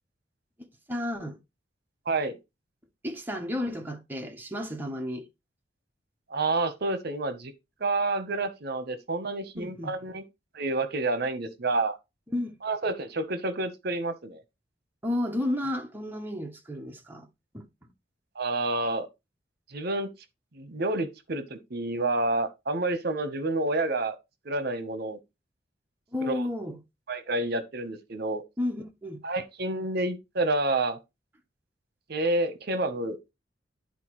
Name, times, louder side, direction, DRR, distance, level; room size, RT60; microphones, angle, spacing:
voice 1, 0.6-1.4 3.0-5.3 9.6-10.0 12.3-12.5 15.0-17.3 17.5-17.6 26.1-26.8 28.6-29.2, left 1 dB, 10° right, 0.9 m, -32 dB
voice 2, 2.1-2.4 6.3-7.5 7.8-10.2 10.5-12.0 12.6-14.4 18.4-19.1 19.7-20.1 20.5-24.2 24.4-25.2 26.2-26.5 27.1-28.4 29.2-31.0 32.1-33.2, right 2 dB, 60° right, 0.9 m, -29 dB
10.5 x 4.3 x 3.0 m
head